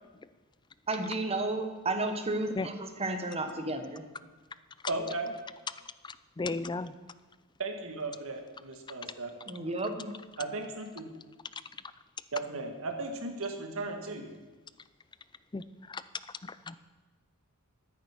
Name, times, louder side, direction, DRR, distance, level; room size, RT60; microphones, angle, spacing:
voice 1, 0.9-4.0 9.5-10.1, right 2 dB, 30° right, 7 dB, 1.2 m, -32 dB
voice 2, 4.9-5.4 7.6-9.4 10.4-11.1 12.3-14.3, right 3 dB, 65° right, 5 dB, 1.7 m, -36 dB
voice 3, 6.0-6.9 15.5-16.0 16.4-16.8, left 3 dB, 20° left, 15 dB, 0.4 m, -35 dB
13.5 x 9.5 x 6.0 m, 1.3 s
head